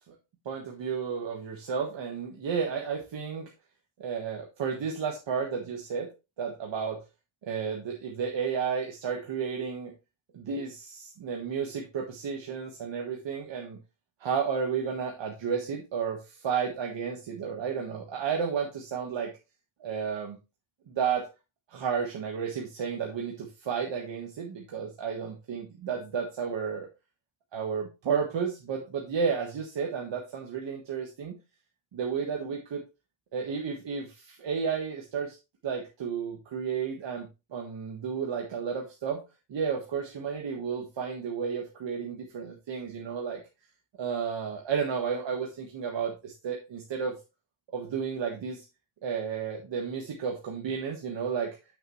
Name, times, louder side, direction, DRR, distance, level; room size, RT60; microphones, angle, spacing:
voice 1, 0.4-3.5 4.0-6.1 6.4-7.0 7.4-9.9 10.3-13.8 14.2-19.3 19.8-20.4 20.9-21.3 21.7-26.9 27.5-31.4 31.9-32.8 33.3-35.4 35.6-39.2 39.5-43.4 44.0-47.2 47.7-48.6 49.0-51.6, right 6 dB, 65° right, 1 dB, 1.5 m, -32 dB
8.7 x 6.5 x 3.1 m, 0.27 s
wide cardioid pair, 170°, 47 cm